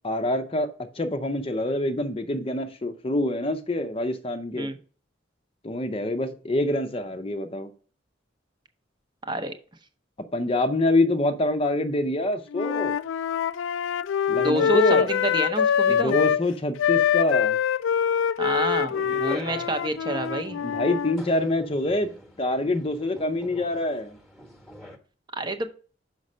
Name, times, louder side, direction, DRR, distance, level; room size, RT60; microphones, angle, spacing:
voice 1, 0.0-0.7 1.0-4.7 5.6-7.7 10.3-12.9 14.3-15.1 15.9-17.6 20.6-22.1 22.4-24.2, left 1 dB, 30° left, 0.6 m, -26 dB
voice 2, 9.2-9.5 14.3-16.1 18.4-20.6 25.3-25.7, right 2 dB, 25° right, 0.7 m, -28 dB
Wind instrument woodwind instrument, 12.5-16.4 16.8-21.2, left 8 dB, 85° left, 0.3 m, -24 dB
sound 1, 18.9-25.0, left 1 dB, ahead, 1.1 m, -45 dB
6.2 x 5.2 x 5.4 m
head